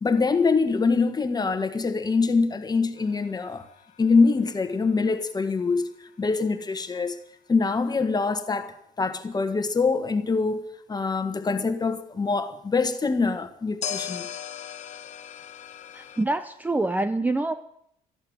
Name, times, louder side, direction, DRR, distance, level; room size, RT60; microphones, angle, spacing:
voice 1, 0.0-3.6 4.0-5.9 6.2-7.2 7.5-10.6 10.9-14.3, left 4 dB, 25° left, 1.6 m, -24 dB
sound 1, 3.0-6.0 13.8-16.2, left 8 dB, 45° left, 1.2 m, -39 dB
voice 2, 15.9-17.6, right 2 dB, 10° right, 0.7 m, -26 dB
13.5 x 11.5 x 8.9 m
cardioid pair, 110°, 17 cm